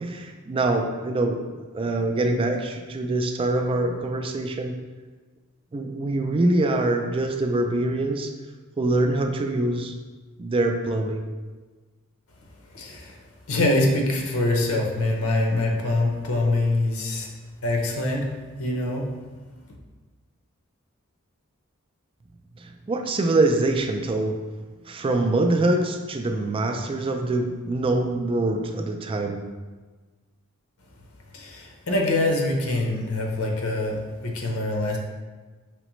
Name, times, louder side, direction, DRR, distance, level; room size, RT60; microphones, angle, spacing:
voice 1, 0.0-4.8 5.7-8.3 8.8-9.9 10.4-11.2 22.6-24.4 24.9-29.4, right 2 dB, 25° right, 4 dB, 0.3 m, -24 dB
voice 2, 12.7-13.2 13.5-17.3 17.6-18.2 18.6-19.1 31.3-35.0, left 2 dB, 80° left, 1 dB, 0.8 m, -24 dB
5.0 x 3.2 x 3.1 m, 1.3 s
head